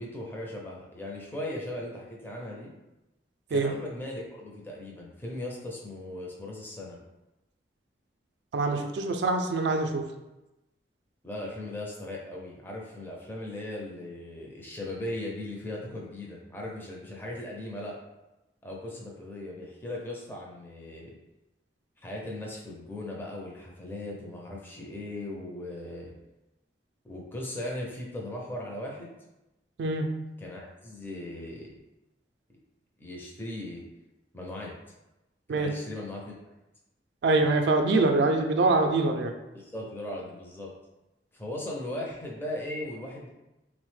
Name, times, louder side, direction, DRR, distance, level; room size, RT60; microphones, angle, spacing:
voice 1, 0.0-2.7 3.5-7.0 11.2-18.0 18.6-21.2 22.0-26.1 27.0-29.1 30.4-31.7 33.0-33.8 34.3-34.7 35.5-36.3 39.5-40.7 41.3-43.3, left 1 dB, 10° left, -3 dB, 0.4 m, -38 dB
voice 2, 8.5-10.0 29.8-30.1 35.5-35.7 37.2-39.3, right 3 dB, 70° right, 4 dB, 0.3 m, -24 dB
3.4 x 2.0 x 3.1 m, 0.98 s
head